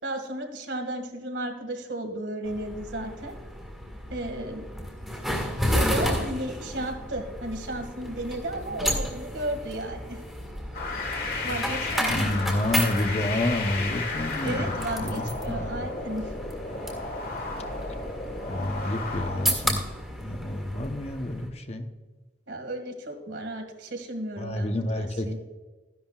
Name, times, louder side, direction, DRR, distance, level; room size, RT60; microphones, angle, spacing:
voice 1, 0.0-3.4 4.1-4.8 5.7-10.2 11.4-12.4 14.4-16.3 22.5-25.4, right 1 dB, 80° right, 4 dB, 2.1 m, -34 dB
sound 1, 2.4-21.5, equal, ahead, 1.7 m, -33 dB
sound 2, 10.7-19.5, left 3 dB, 50° left, 1.7 m, -33 dB
voice 2, 12.1-15.9 18.5-19.8 20.2-21.9 24.4-25.4, left 1 dB, 35° left, 6 dB, 0.8 m, -29 dB
14.0 x 11.0 x 2.4 m, 1.3 s
head